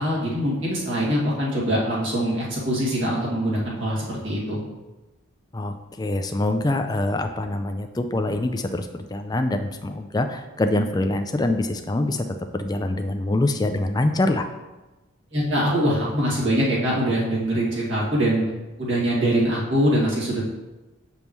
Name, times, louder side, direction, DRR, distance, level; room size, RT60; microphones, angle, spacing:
voice 1, 0.0-4.6 15.3-18.4 18.8-20.5, equal, 60° right, -6 dB, 2.0 m, -23 dB
voice 2, 5.5-12.2 12.5-14.5, left 2 dB, 20° left, 7 dB, 0.3 m, -24 dB
8.2 x 5.3 x 3.1 m, 1.1 s
head